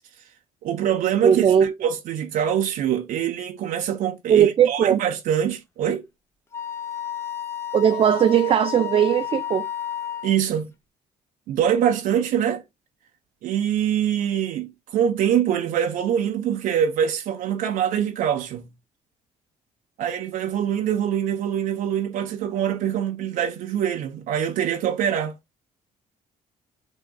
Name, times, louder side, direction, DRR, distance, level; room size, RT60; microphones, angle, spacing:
voice 1, 0.6-6.0 10.2-10.7 11.5-12.6 13.4-18.7 20.0-25.4, right 9 dB, 75° right, 0.7 m, -24 dB
voice 2, 1.2-1.7 4.3-5.0 7.7-9.7, right 9 dB, 40° right, 0.4 m, -18 dB
Wind instrument woodwind instrument, 6.5-10.4, left 10 dB, 15° left, 0.7 m, -32 dB
6.3 x 3.6 x 2.2 m
cardioid pair, 100°, 14 cm